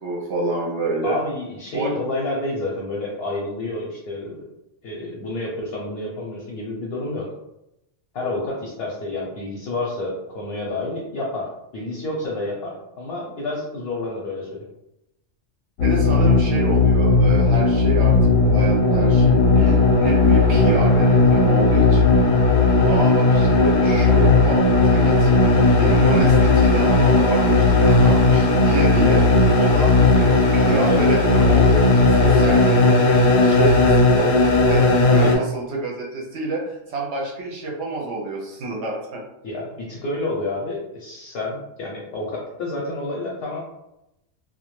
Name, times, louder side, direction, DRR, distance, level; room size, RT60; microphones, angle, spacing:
voice 1, 0.0-1.2 1.7-2.2 15.8-22.1 22.9-25.3 25.7-29.2 29.6-39.2, right 2 dB, 65° right, -2 dB, 0.8 m, -28 dB
voice 2, 1.0-4.4 4.8-7.3 8.1-14.5 30.6-31.1 35.0-35.3 39.4-43.6, left 2 dB, 65° left, -3 dB, 0.7 m, -29 dB
sound 1, 15.8-35.4, left 3 dB, 85° left, 1.0 m, -16 dB
2.2 x 2.1 x 2.9 m, 0.89 s
omnidirectional pair, 1.3 m